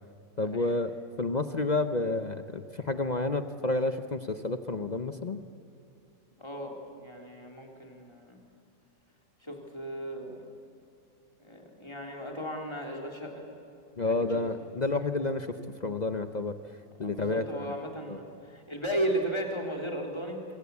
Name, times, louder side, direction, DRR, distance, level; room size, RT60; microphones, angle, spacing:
voice 1, 0.4-5.4 14.0-16.6 17.0-17.7 18.1-18.2, left 2 dB, 55° left, 9 dB, 0.4 m, -30 dB
voice 2, 6.4-8.4 9.4-10.4 11.4-13.5 14.0-14.4 17.0-20.5, right 1 dB, 15° left, 1 dB, 3.4 m, -35 dB
25.5 x 23.5 x 8.3 m, 2.5 s
omnidirectional pair, 2.0 m